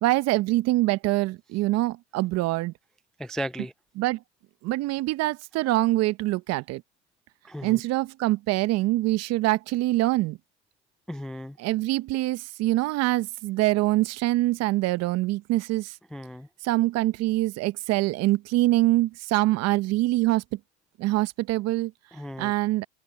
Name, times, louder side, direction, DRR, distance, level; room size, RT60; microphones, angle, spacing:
voice 1, 0.0-2.7 3.6-3.7 3.9-4.2 4.6-6.8 7.6-10.4 11.6-16.0 16.6-20.6 21.0-21.9 22.4-22.9, right 18 dB, 45° right, 0.9 m, -24 dB
voice 2, 3.2-3.7 7.4-7.8 11.1-11.6 16.1-16.5 22.1-22.5, equal, ahead, 0.3 m, -35 dB
open air
hypercardioid pair, 105°, 35 cm